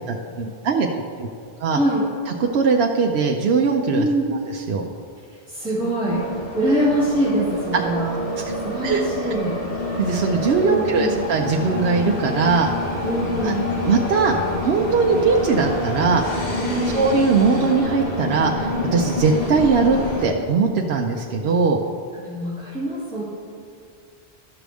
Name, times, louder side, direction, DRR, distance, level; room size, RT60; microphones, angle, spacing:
voice 1, 0.1-0.9 1.2-1.3 1.6-1.8 2.3-4.1 4.5-4.9 8.4-8.5 8.8-9.0 10.0-12.7 13.4-13.5 13.9-14.3 14.6-16.2 16.9-21.8, right 5 dB, 90° right, 1 dB, 0.9 m, -20 dB
voice 2, 1.7-2.0 3.9-4.3 5.5-6.2 6.5-8.1 8.6-9.6 10.6-11.2 13.0-13.7 16.6-17.0 22.2-23.2, right 1 dB, 5° right, -13 dB, 2.4 m, -24 dB
sound 1, 6.1-20.3, left 2 dB, 65° left, 1.6 m, -27 dB
13.0 x 6.2 x 3.4 m, 2.2 s
omnidirectional pair, 1.0 m